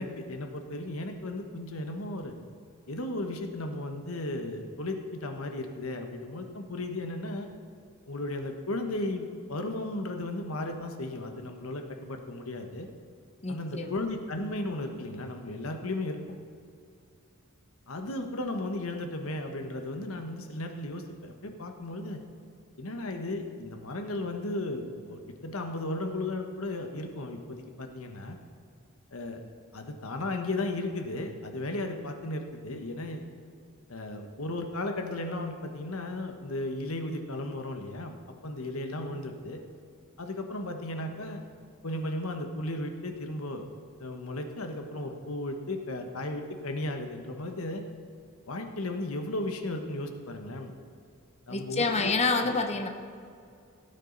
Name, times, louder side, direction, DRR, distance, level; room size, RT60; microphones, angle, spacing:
voice 1, 0.0-2.3 2.9-7.5 8.1-12.9 13.5-16.2 17.9-22.2 22.8-28.4 29.1-29.4 29.7-33.2 33.9-38.2 38.4-39.6 40.2-41.4 41.8-43.6 44.0-47.8 48.5-50.7 51.5-52.1, left 2 dB, 75° left, 5 dB, 1.2 m, -35 dB
voice 2, 13.4-14.0 51.5-52.9, left 3 dB, 30° left, 5 dB, 0.8 m, -28 dB
16.5 x 9.1 x 4.0 m, 2.4 s
head